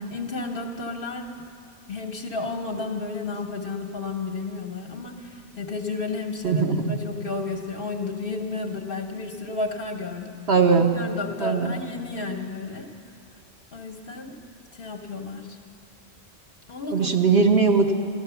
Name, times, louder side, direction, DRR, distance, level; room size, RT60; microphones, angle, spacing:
voice 1, 0.1-1.3 1.9-10.3 10.8-12.9 13.7-14.4 14.8-15.6 16.7-17.2, left 3 dB, 45° left, 2 dB, 1.1 m, -32 dB
voice 2, 6.4-7.0 10.5-10.9 11.4-11.8 16.9-17.9, right 5 dB, 55° right, 3 dB, 1.0 m, -20 dB
13.5 x 12.5 x 6.9 m, 2.3 s
omnidirectional pair, 1.4 m